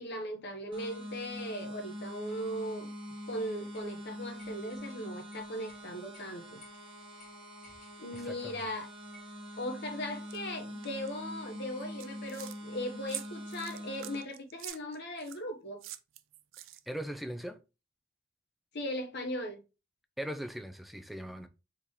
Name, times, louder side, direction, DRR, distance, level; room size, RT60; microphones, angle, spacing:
voice 1, 0.0-2.9 3.3-6.6 8.0-8.9 9.6-15.8 18.7-19.6, equal, 60° left, 0.8 m, -38 dB
sound 1, 0.7-14.2, equal, 25° right, 1.1 m, -44 dB
sound 2, 3.7-3.9 4.4-5.0 5.3-5.8 6.1-6.3 6.6-6.8 7.2-7.3 7.6-8.7 9.1-9.4, left 2 dB, 40° left, 1.8 m, -58 dB
voice 2, 8.2-8.6 16.9-17.6 20.2-21.5, equal, ahead, 0.4 m, -39 dB
sound 3, 10.3-10.4 10.8-11.1 11.8-12.6 13.1-15.4 15.8-17.1, right 14 dB, 90° right, 0.4 m, -45 dB
3.7 x 2.8 x 4.5 m
head